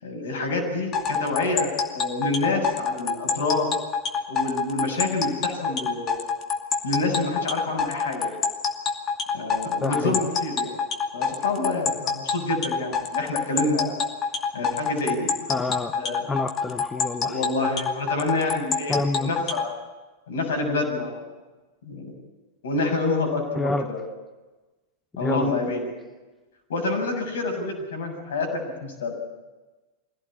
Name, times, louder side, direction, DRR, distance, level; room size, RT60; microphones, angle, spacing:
voice 1, 0.0-3.7 4.3-6.3 6.8-8.3 9.3-10.7 11.1-14.0 14.5-15.3 16.0-16.3 17.2-19.7 20.3-21.2 21.8-22.1 22.6-24.0 25.2-26.0 26.7-29.1, left 2 dB, 65° left, 2 dB, 6.7 m, -27 dB
sound 1, 0.9-19.7, left 6 dB, 30° left, 2.5 m, -26 dB
voice 2, 9.8-10.2 15.5-16.0 16.3-17.4 18.9-19.3 23.5-23.9 25.2-25.5, left 3 dB, 15° left, 9 dB, 1.0 m, -28 dB
23.5 x 17.0 x 8.7 m, 1.2 s
figure-of-eight pair, 90°, 0 cm